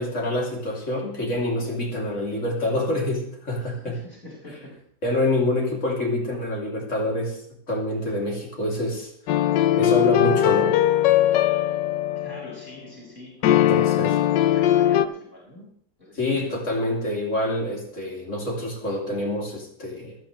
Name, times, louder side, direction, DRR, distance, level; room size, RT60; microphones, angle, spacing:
voice 1, 0.0-3.9 5.0-7.4 7.7-9.1 9.8-10.8 13.5-14.1 16.2-20.2, left 1 dB, 45° left, -1 dB, 3.6 m, -26 dB
voice 2, 3.6-4.8 12.1-15.7 16.0-16.6, left 1 dB, 30° left, -6 dB, 6.7 m, -44 dB
sound 1, 9.3-12.6 13.4-15.1, left 12 dB, 85° left, 1.4 m, -20 dB
26.5 x 9.3 x 3.4 m, 0.66 s
omnidirectional pair, 1.9 m